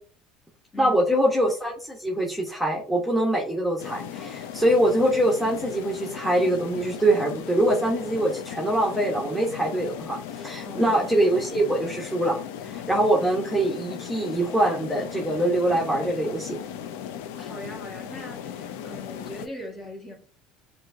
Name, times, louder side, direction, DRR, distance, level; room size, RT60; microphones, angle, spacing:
voice 1, 0.8-12.4 12.6-16.6, right 1 dB, ahead, 1.1 m, -24 dB
sound 1, 3.8-19.5, left 9 dB, 75° left, 0.5 m, -37 dB
voice 2, 10.6-11.0 17.4-20.1, left 1 dB, 30° left, 1.8 m, -40 dB
7.4 x 2.6 x 2.7 m
hypercardioid pair, 80°, 0 cm